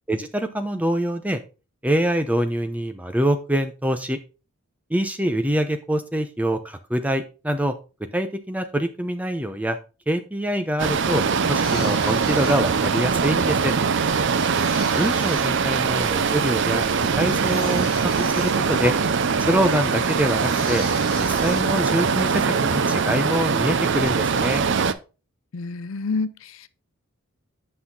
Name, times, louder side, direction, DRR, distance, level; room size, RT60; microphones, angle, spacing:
voice 1, 0.1-1.4 1.8-4.2 4.9-7.7 8.1-9.8 10.1-13.7 15.0-18.9 19.4-20.8 21.2-24.6, equal, 5° right, 0.7 m, -25 dB
sound 1, 10.8-24.9, right 5 dB, 55° right, 0.5 m, -22 dB
sound 2, 11.6-23.6, left 5 dB, 40° left, 3.0 m, -43 dB
voice 2, 25.5-26.7, left 4 dB, 65° left, 0.5 m, -28 dB
8.5 x 5.8 x 3.8 m
head